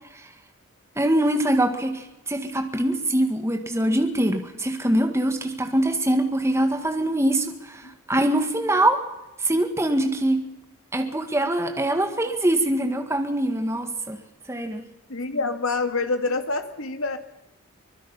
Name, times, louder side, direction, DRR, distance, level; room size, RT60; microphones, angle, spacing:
voice 1, 1.0-9.0 9.4-10.5 10.9-14.2 14.5-14.8, right 1 dB, 10° right, 5 dB, 1.9 m, -23 dB
voice 2, 15.1-17.2, left 3 dB, 75° left, 8 dB, 2.0 m, -26 dB
24.5 x 21.0 x 5.6 m, 0.96 s
head